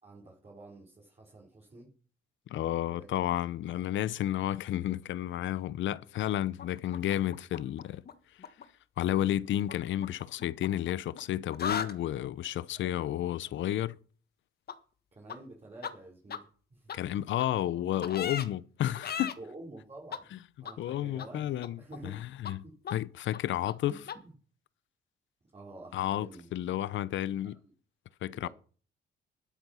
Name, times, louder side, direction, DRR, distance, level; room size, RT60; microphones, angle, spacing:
voice 1, 0.0-1.9 2.9-3.1 12.8-13.1 15.1-16.9 19.4-20.3 20.6-22.2 22.6-22.8 23.9-24.0 24.2-24.3 25.5-26.5 27.4-27.7 28.3-28.5, right 2 dB, 30° right, 4.6 m, -49 dB
voice 2, 2.5-8.0 9.0-14.0 16.9-19.4 20.8-21.8 22.0-22.6 22.9-23.9 25.9-27.6 28.2-28.5, left 12 dB, 75° left, 0.8 m, -31 dB
sound 1, 6.6-8.1 8.4-8.6 9.7-11.2 11.5-11.9 14.7-14.8 15.3-15.4 15.8-15.9 16.3-16.4 16.9-17.0 17.4-17.5 18.0-18.5 18.9-19.3 20.1-20.2 20.6-20.7 21.2-21.3 21.6-22.2 22.4-22.5 22.8-22.9 23.3-23.4 23.7-23.8 24.1-24.2, left 7 dB, 50° left, 1.5 m, -37 dB
12.5 x 10.5 x 5.7 m
cardioid pair, 90°, 20 cm